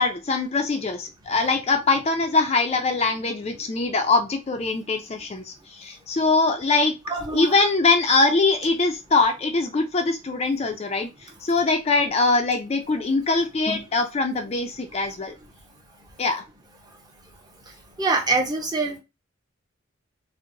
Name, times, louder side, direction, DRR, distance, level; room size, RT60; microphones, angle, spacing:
voice 1, 0.0-15.3 16.2-16.4, left 3 dB, 30° left, 5 dB, 0.4 m, -23 dB
voice 2, 7.1-7.5 18.0-19.0, right 3 dB, 20° right, 2 dB, 0.6 m, -24 dB
4.5 x 2.0 x 2.6 m, 0.26 s
head